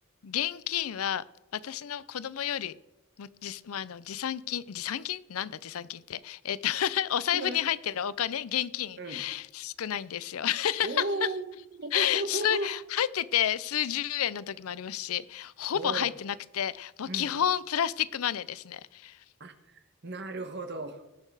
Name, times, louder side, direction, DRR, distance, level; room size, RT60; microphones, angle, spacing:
voice 1, 0.2-1.2 1.5-2.7 3.2-11.0 11.9-19.2, left 10 dB, 80° left, 19 dB, 0.5 m, -30 dB
voice 2, 10.8-12.7 15.7-16.1 17.1-17.3 19.4-21.0, right 2 dB, 50° right, 7 dB, 1.3 m, -35 dB
19.0 x 6.6 x 4.8 m, 0.92 s
head